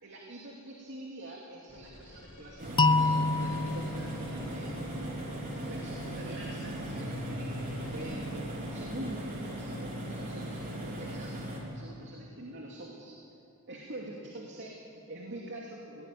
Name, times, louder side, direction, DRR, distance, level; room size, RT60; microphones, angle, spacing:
voice 1, 0.0-5.2 5.5-13.2 13.7-16.1, right 1 dB, 55° right, -2 dB, 2.7 m, -45 dB
sound 1, 1.7-9.1, left 1 dB, 45° left, 6.4 m, -53 dB
sound 2, 2.6-11.6, right 1 dB, 40° right, 4.3 m, -38 dB
sound 3, 2.8-5.7, left 3 dB, 20° left, 0.5 m, -29 dB
20.5 x 18.0 x 9.3 m, 2.7 s
head